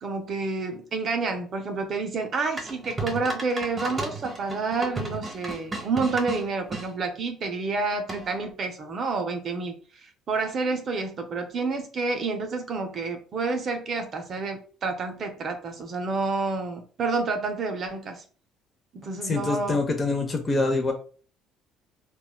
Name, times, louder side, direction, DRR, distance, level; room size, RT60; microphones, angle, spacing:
voice 1, 0.0-18.2 18.9-19.8, right 4 dB, 50° right, 5 dB, 0.4 m, -29 dB
sound 1, 2.6-6.9 8.1-8.5, right 2 dB, 20° right, 0.8 m, -34 dB
voice 2, 19.2-20.9, left 3 dB, 30° left, 3 dB, 0.5 m, -25 dB
2.9 x 2.1 x 2.2 m, 0.40 s
supercardioid pair, 75°, 0 cm